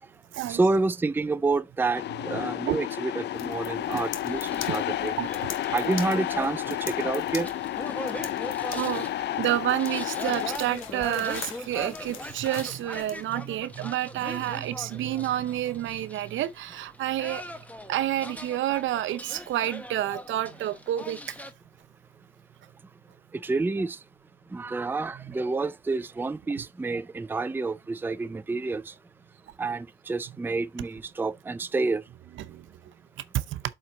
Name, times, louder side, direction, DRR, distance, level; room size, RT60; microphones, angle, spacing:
voice 1, 0.5-5.1 5.7-7.5 23.4-24.0 24.5-28.8 29.6-32.0, right 3 dB, 10° right, 0.4 m, -28 dB
sound 1, 1.9-10.6, left 13 dB, 60° left, 0.4 m, -31 dB
sound 2, 3.4-13.2, left 9 dB, 85° left, 1.3 m, -43 dB
sound 3, 4.3-21.5, left 1 dB, 5° left, 1.0 m, -41 dB
voice 2, 8.7-17.4 17.9-21.4 32.4-32.7 33.3-33.6, right 13 dB, 75° right, 0.7 m, -29 dB
7.5 x 4.4 x 3.8 m
cardioid pair, 90°, 20 cm